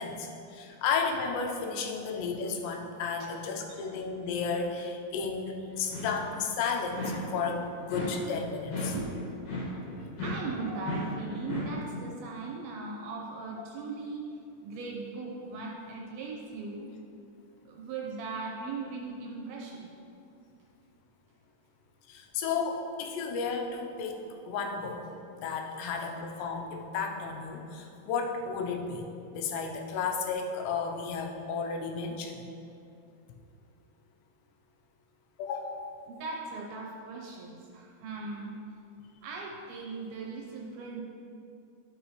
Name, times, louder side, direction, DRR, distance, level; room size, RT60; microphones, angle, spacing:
voice 1, 0.0-8.9 22.1-24.2 24.5-25.0 25.4-32.5 35.4-35.9, left 5 dB, 85° left, 2 dB, 2.9 m, -33 dB
sound 1, 5.8-6.4 6.9-7.5 7.9-11.8, left 1 dB, 60° left, 2.4 m, -36 dB
voice 2, 10.2-14.2 14.6-16.9 17.7-19.9 36.1-38.6 39.2-41.0, right 4 dB, 75° right, -1 dB, 2.4 m, -39 dB
11.0 x 6.1 x 3.1 m, 2.6 s
omnidirectional pair, 4.9 m